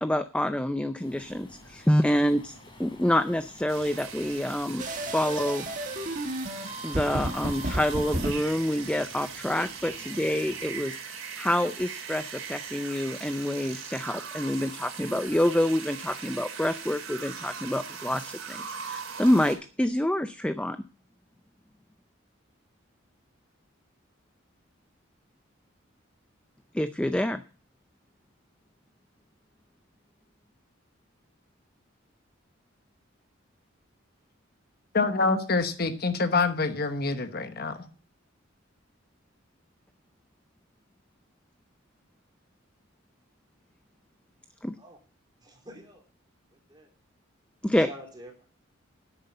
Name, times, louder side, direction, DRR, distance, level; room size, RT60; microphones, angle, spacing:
voice 1, 0.0-4.8 5.1-5.7 6.8-11.0 11.4-20.8 26.7-27.4 44.6-44.8 47.6-47.9, left 1 dB, 5° left, 11 dB, 0.4 m, -27 dB
Waves surf, 1.0-10.7, left 1 dB, 25° left, 3.3 m, -51 dB
sound 1, 3.7-19.6, right 6 dB, 85° right, 3.0 m, -40 dB
sound 2, 4.8-8.3, right 1 dB, 40° right, 1.7 m, -32 dB
voice 2, 34.9-37.9, left 3 dB, 50° left, 9 dB, 1.1 m, -26 dB
voice 3, 45.4-46.0 46.7-46.9 47.7-48.3, right 1 dB, 20° right, 1 dB, 3.2 m, -46 dB
10.5 x 8.3 x 5.4 m, 0.37 s
head